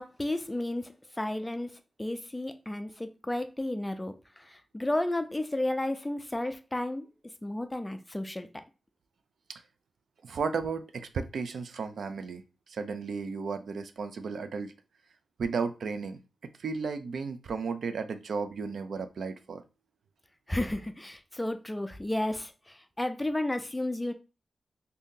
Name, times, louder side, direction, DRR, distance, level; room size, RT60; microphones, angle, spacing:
voice 1, 0.0-1.7 2.0-7.1 7.4-8.5 20.5-24.1, left 1 dB, 10° left, 0.3 m, -32 dB
voice 2, 10.2-14.7 15.4-19.6, right 5 dB, 85° right, 0.4 m, -34 dB
2.7 x 2.7 x 3.6 m
wide cardioid pair, 150°, 0 cm